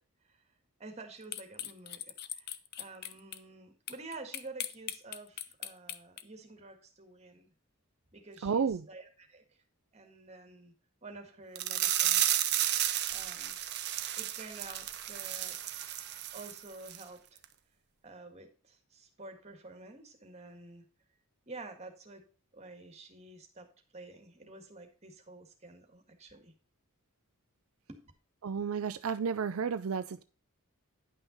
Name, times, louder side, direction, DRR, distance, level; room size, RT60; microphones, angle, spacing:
voice 1, 0.8-7.5 8.1-9.4 9.9-10.7 11.0-12.5 13.1-13.6 14.2-15.6 16.3-17.4 18.0-20.9 21.5-22.2 22.5-23.7 23.9-26.5 27.9-28.0, right 2 dB, 30° right, 1.9 m, -49 dB
sound 1, 1.3-3.4 3.9-6.2, left 11 dB, 45° left, 0.6 m, -39 dB
voice 2, 8.4-8.9 28.4-30.2, right 6 dB, 70° right, 0.4 m, -32 dB
sound 2, 11.6-16.6 16.9-17.0 17.4-17.5, right 12 dB, 50° right, 0.8 m, -32 dB
10.5 x 5.8 x 4.0 m
head